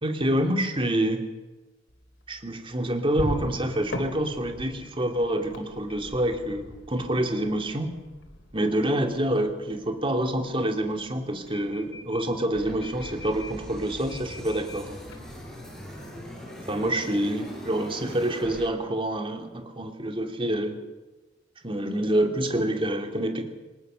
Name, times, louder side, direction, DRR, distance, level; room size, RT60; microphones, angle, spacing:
voice 1, 0.0-1.2 2.3-7.9 8.5-15.0 16.7-20.8 21.6-23.4, right 1 dB, 30° right, 4 dB, 2.5 m, -27 dB
sound 1, 1.9-16.3, equal, 80° left, 4.2 m, -42 dB
sound 2, 12.5-18.7, equal, 5° left, 6.2 m, -41 dB
23.5 x 20.0 x 6.8 m, 1.2 s
head